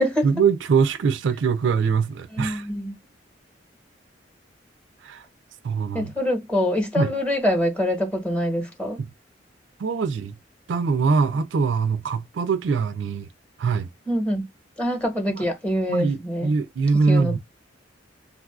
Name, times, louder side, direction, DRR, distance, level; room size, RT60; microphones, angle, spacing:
voice 1, 0.2-2.7 5.0-5.2 5.6-6.1 7.0-7.1 9.0-9.1 9.8-10.4 10.7-13.3 13.6-13.9 15.9-17.4, right 5 dB, 75° right, 0.4 m, -22 dB
voice 2, 2.3-2.9 5.9-9.0 14.1-14.5 14.8-16.5 17.1-17.4, equal, 5° left, 1.0 m, -25 dB
3.5 x 2.4 x 2.3 m
head